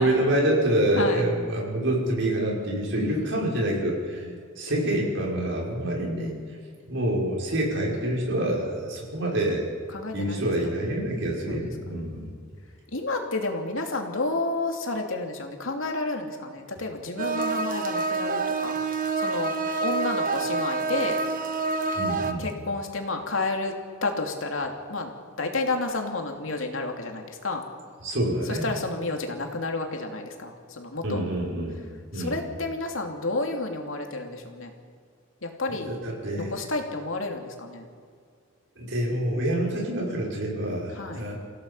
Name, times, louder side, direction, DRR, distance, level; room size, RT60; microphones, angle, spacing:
voice 1, 0.0-4.2 4.6-6.4 6.9-9.7 10.1-12.3 21.9-22.5 28.0-28.7 31.0-31.8 32.1-32.4 35.7-36.5 38.8-41.3, right 1 dB, 65° right, -2 dB, 6.0 m, -26 dB
voice 2, 2.9-3.4 4.1-4.4 9.9-10.5 11.5-12.3 12.9-18.8 19.2-19.5 19.8-21.2 22.4-23.7 24.0-25.1 25.4-27.6 28.5-31.2 32.1-34.7 35.4-35.9 36.3-37.9 40.9-41.2, left 2 dB, 80° left, 3 dB, 2.7 m, -31 dB
sound 1, 17.2-22.3, right 4 dB, 45° right, 1.3 m, -27 dB
29.0 x 16.5 x 5.7 m, 2.1 s
head